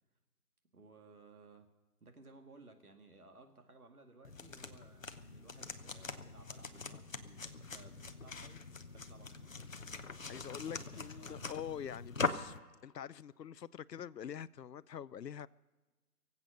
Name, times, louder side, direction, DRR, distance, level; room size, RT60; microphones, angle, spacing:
voice 1, 0.7-1.7 2.0-8.6 8.9-9.7 10.3-11.8, right 3 dB, 65° right, 2.2 m, -59 dB
sound 1, 4.2-12.6, left 4 dB, 55° left, 0.9 m, -42 dB
voice 2, 10.3-12.5 12.8-15.5, left 9 dB, 85° left, 0.6 m, -45 dB
23.5 x 8.2 x 6.6 m
figure-of-eight pair, 180°, 48 cm